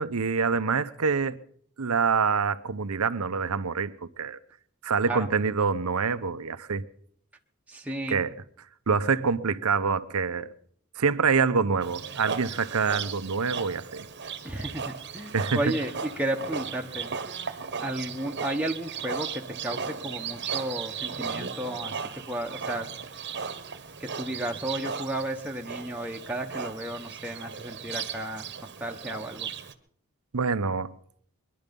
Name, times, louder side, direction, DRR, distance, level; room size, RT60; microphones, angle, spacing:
voice 1, 0.0-1.4 1.8-4.4 4.8-6.8 8.1-8.3 8.9-10.5 11.0-14.0 15.3-15.6 30.3-30.9, right 5 dB, 80° right, 0.8 m, -26 dB
voice 2, 7.7-8.2 14.4-17.1 17.8-22.9 24.0-28.4 28.8-29.5, right 1 dB, 5° right, 1.0 m, -33 dB
Livestock farm animals working animals, 11.8-29.7, right 6 dB, 50° right, 1.1 m, -36 dB
22.0 x 11.0 x 5.3 m
head